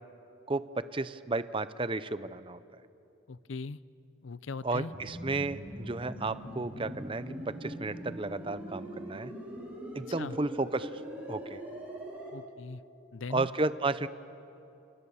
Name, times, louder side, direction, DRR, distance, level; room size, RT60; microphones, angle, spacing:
voice 1, 0.5-2.6 4.6-9.3 9.9-10.9 11.3-11.6 13.3-14.1, right 2 dB, 25° right, 14 dB, 0.7 m, -33 dB
voice 2, 3.3-3.8 4.2-4.9 10.2-10.4 12.3-12.8 13.1-13.5, left 3 dB, 70° left, 17 dB, 0.6 m, -40 dB
sound 1, 4.9-12.3, equal, 10° right, 6.9 m, -42 dB
29.0 x 28.5 x 7.1 m, 2.8 s
head